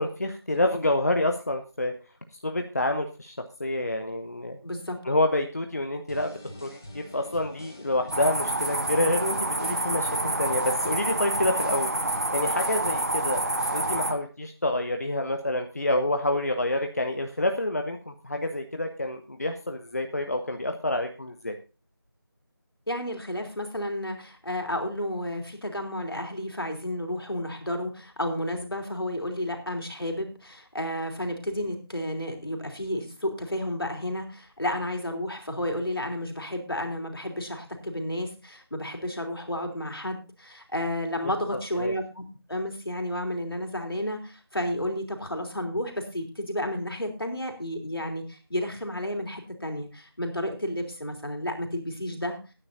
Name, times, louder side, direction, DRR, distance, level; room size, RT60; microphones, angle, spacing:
voice 1, 0.0-1.9 2.3-4.6 5.0-13.4 13.7-21.6 41.5-41.9, left 1 dB, 40° left, 6 dB, 0.8 m, -28 dB
voice 2, 4.6-5.0 22.9-42.2 42.5-52.4, left 1 dB, 75° left, 3 dB, 3.4 m, -32 dB
sound 1, 6.1-14.1, left 1 dB, 10° left, 0.6 m, -45 dB
sound 2, 8.1-14.1, right 2 dB, 40° right, 0.9 m, -28 dB
18.0 x 9.9 x 2.7 m, 0.32 s
figure-of-eight pair, 170°, 13 cm